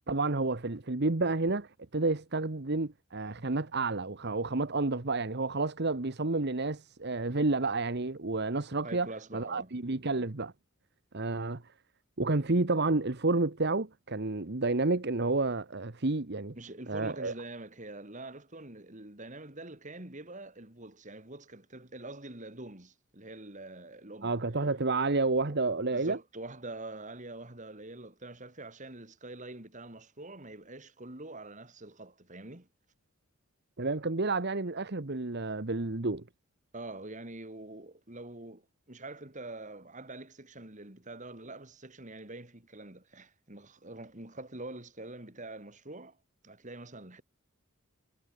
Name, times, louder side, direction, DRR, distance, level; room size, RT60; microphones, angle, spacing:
voice 1, 0.1-10.5 11.1-11.6 12.2-16.6 16.9-17.3 24.2-26.2 33.8-36.2, right 3 dB, 50° right, 1.2 m, -30 dB
voice 2, 8.8-9.7 16.5-24.4 25.4-25.6 25.9-32.7 36.7-38.6 38.9-46.2 46.4-47.2, right 2 dB, 35° right, 3.2 m, -45 dB
head